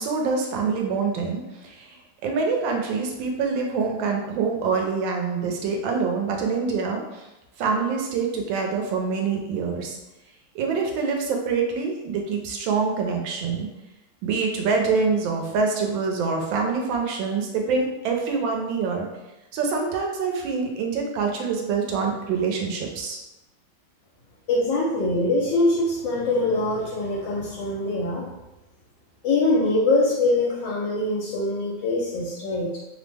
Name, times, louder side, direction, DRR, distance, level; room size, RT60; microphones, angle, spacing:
voice 1, 0.0-1.9 2.2-7.3 7.6-10.0 10.5-13.7 14.2-19.1 19.5-23.2, right 5 dB, 85° right, 2 dB, 1.4 m, -25 dB
voice 2, 24.5-28.2 29.2-32.8, left 2 dB, 80° left, -3 dB, 1.3 m, -23 dB
3.3 x 2.0 x 3.3 m, 0.99 s
omnidirectional pair, 2.0 m